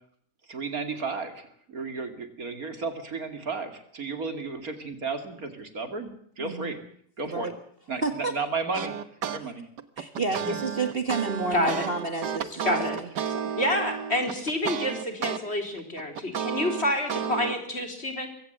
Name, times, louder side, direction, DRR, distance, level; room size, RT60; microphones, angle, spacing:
voice 1, 0.5-6.8 7.2-7.5 7.9-9.0 9.3-9.7 10.3-10.6, right 4 dB, 60° right, 8 dB, 3.0 m, -33 dB
voice 2, 6.4-6.8 7.3-7.5 8.0-8.3 9.4-9.5 10.0-13.5, right 3 dB, 35° right, 7 dB, 1.9 m, -31 dB
sound 1, 8.7-9.4 9.8-15.4 15.8-17.6, right 7 dB, 80° right, 1.9 m, -32 dB
voice 3, 11.5-11.9 12.6-13.0 13.6-18.3, left 1 dB, 40° left, 5 dB, 4.3 m, -28 dB
22.5 x 17.0 x 7.9 m, 0.63 s
omnidirectional pair, 1.8 m